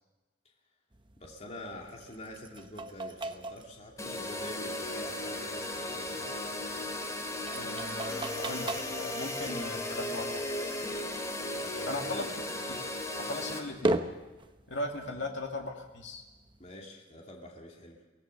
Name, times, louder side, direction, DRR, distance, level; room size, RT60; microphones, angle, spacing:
sound 1, 0.9-16.7, right 2 dB, 25° right, 0.9 m, -41 dB
voice 1, 1.2-6.4 11.6-12.3 15.1-15.3 16.6-18.0, left 1 dB, 35° left, 0 dB, 2.9 m, -46 dB
sound 2, 4.0-13.6, left 1 dB, 15° left, 2.7 m, -36 dB
voice 2, 7.5-10.4 11.9-12.2 12.7-12.8 13.2-14.0 14.7-16.2, left 2 dB, 85° left, 2 dB, 2.3 m, -38 dB
24.0 x 17.0 x 6.6 m, 1.2 s
head